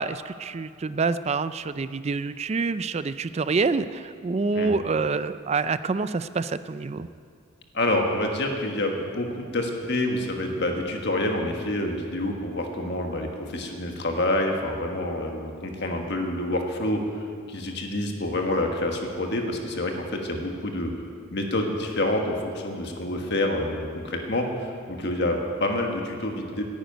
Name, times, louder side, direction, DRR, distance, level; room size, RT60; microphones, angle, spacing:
voice 1, 0.0-7.1, right 4 dB, 30° right, 14 dB, 0.3 m, -27 dB
voice 2, 7.7-17.0 17.5-20.9 21.3-24.5 24.9-26.6, left 1 dB, 55° left, 3 dB, 1.5 m, -27 dB
10.5 x 10.5 x 9.2 m, 2.4 s
head